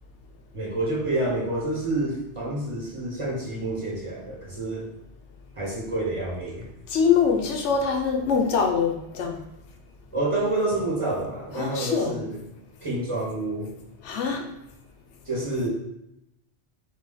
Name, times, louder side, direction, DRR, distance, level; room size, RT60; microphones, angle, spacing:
voice 1, 0.5-4.9 5.6-6.7 10.1-12.4 12.8-13.7 15.3-15.7, right 2 dB, 30° right, -4 dB, 0.9 m, -28 dB
voice 2, 6.9-9.4 11.6-12.1 14.0-14.4, left 6 dB, 85° left, 3 dB, 1.0 m, -23 dB
4.2 x 2.8 x 3.8 m, 0.83 s
omnidirectional pair, 1.2 m